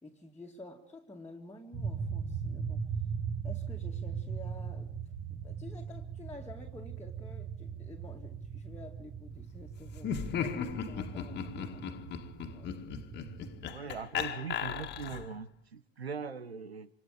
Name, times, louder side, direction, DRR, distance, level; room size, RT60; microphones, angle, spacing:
voice 1, 0.0-2.9 3.4-4.9 5.4-12.0 12.4-12.7, left 2 dB, 10° left, -1 dB, 2.3 m, -50 dB
sound 1, 1.7-13.6, right 6 dB, 25° right, 2.7 m, -39 dB
Laughter, 10.0-15.4, left 7 dB, 35° left, 2.0 m, -37 dB
voice 2, 13.6-16.9, right 5 dB, 85° right, 16 dB, 1.3 m, -41 dB
27.0 x 25.5 x 5.0 m, 0.64 s
figure-of-eight pair, 80°, 31 cm